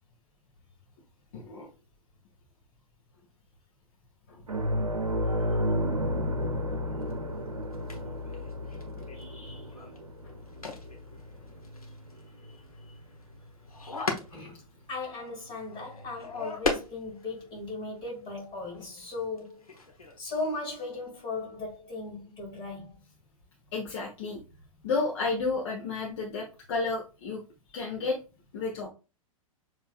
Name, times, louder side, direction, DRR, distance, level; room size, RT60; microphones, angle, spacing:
voice 1, 1.3-1.7 4.3-4.4 5.4-5.6 9.0-9.7 10.2-10.3 23.7-24.4 24.8-27.4 27.7-28.2 28.5-28.9, left 3 dB, 50° left, 1.2 m, -32 dB
sound 1, 4.5-13.4 13.8-13.9 16.0-16.1, equal, 85° right, 0.7 m, -32 dB
sound 2, 7.0-7.1 7.7-17.6 18.0-18.1 18.4-19.1 19.4-20.2, left 3 dB, 80° left, 1.1 m, -39 dB
voice 2, 14.3-19.7 20.2-23.0, left 3 dB, 25° left, 2.6 m, -37 dB
7.1 x 3.0 x 2.4 m
figure-of-eight pair, 100°, 18 cm